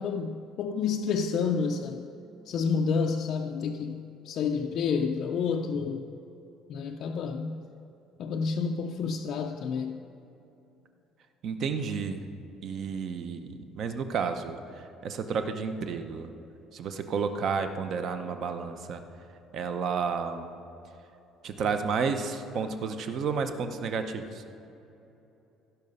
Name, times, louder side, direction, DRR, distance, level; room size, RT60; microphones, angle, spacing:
voice 1, 0.0-2.0 2.5-6.0 6.7-7.6 8.2-10.0, left 5 dB, 45° left, 2 dB, 0.4 m, -29 dB
voice 2, 11.4-12.3 12.6-16.3 16.7-19.0 19.5-20.5 21.4-24.4, right 5 dB, 40° right, 8 dB, 0.7 m, -31 dB
16.0 x 5.7 x 5.4 m, 3.0 s
cardioid pair, 175°, 0 cm